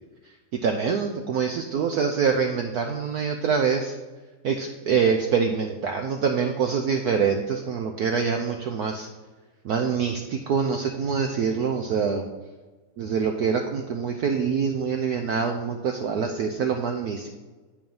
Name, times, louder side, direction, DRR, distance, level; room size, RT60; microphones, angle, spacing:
voice 1, 0.6-3.9 4.4-9.1 9.6-12.2 13.0-17.3, right 6 dB, 75° right, 4 dB, 0.9 m, -25 dB
9.0 x 4.8 x 5.4 m, 1.3 s
omnidirectional pair, 2.3 m